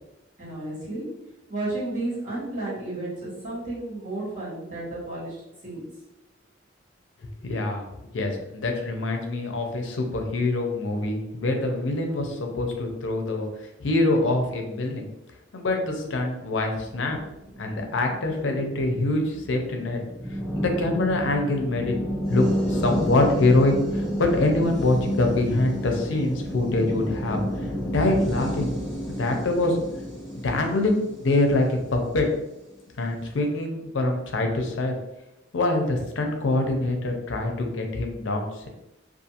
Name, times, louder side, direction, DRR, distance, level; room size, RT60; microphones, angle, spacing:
voice 1, 0.4-1.1 1.5-5.4 5.6-5.8, right 2 dB, 40° right, -9 dB, 1.2 m, -32 dB
voice 2, 7.4-7.9 8.1-13.5 13.8-15.1 15.5-17.2 17.6-20.0 20.5-22.0 22.3-27.4 27.9-28.7 29.1-29.8 30.3-32.3 33.0-34.9 35.5-38.7, left 2 dB, 75° left, 3 dB, 0.5 m, -24 dB
sound 1, 16.9-32.4, equal, ahead, 0.5 m, -31 dB
2.5 x 2.4 x 2.7 m, 0.92 s
head